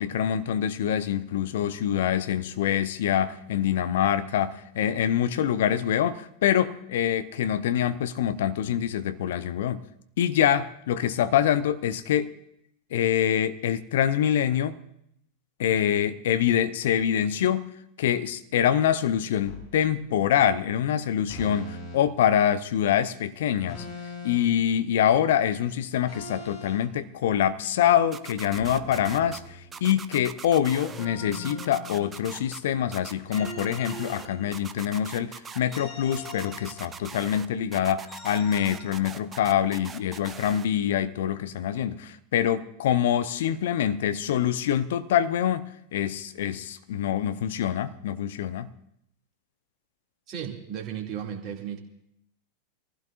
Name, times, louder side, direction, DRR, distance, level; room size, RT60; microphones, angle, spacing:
voice 1, 0.0-9.8 10.2-12.3 12.9-14.8 15.6-17.7 18.0-23.8 24.2-48.7, left 10 dB, 60° left, 0.8 m, -25 dB
sound 1, 19.4-19.7 21.3-22.0 23.7-24.6 26.1-26.8 28.5-29.9 30.9-32.5 33.3-34.9 35.7-37.2 38.1-38.8, left 3 dB, 45° left, 6.2 m, -41 dB
sound 2, 28.1-29.4 29.7-31.1 31.3-32.6 32.9-34.3 34.5-35.8 36.1-37.5 37.7-40.7, right 6 dB, 20° right, 0.8 m, -41 dB
voice 2, 50.3-51.8, right 9 dB, 40° right, 2.4 m, -35 dB
24.5 x 15.5 x 2.5 m
figure-of-eight pair, 90°, 0 cm